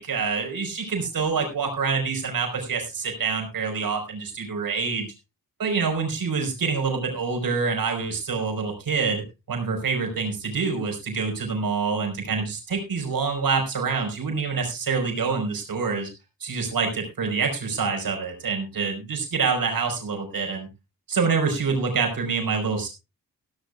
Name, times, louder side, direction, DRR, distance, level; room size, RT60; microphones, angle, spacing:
voice 1, 0.0-5.1 5.6-9.2 9.5-16.1 16.4-20.7 21.1-22.9, right 5 dB, 85° right, 2 dB, 4.9 m, -26 dB
16.0 x 14.5 x 2.4 m, 0.26 s
cardioid pair, 80°, 34 cm